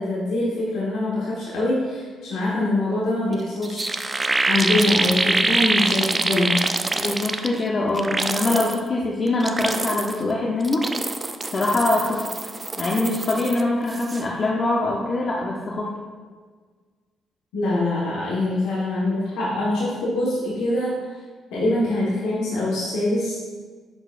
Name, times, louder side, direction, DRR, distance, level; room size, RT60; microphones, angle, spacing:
voice 1, 0.0-3.9 4.5-6.6 17.5-20.9 21.5-23.4, left 2 dB, 90° left, -7 dB, 1.4 m, -24 dB
sound 1, 3.3-3.4 3.6-7.6 8.0-8.8 9.3-10.2 10.6-13.6 13.9-14.2, right 2 dB, 25° right, 0.4 m, -25 dB
voice 2, 6.9-10.8 11.5-12.2 12.8-15.9, left 2 dB, 45° left, -3 dB, 0.8 m, -23 dB
9.5 x 4.8 x 2.5 m, 1.5 s
cardioid pair, 80°, 0 cm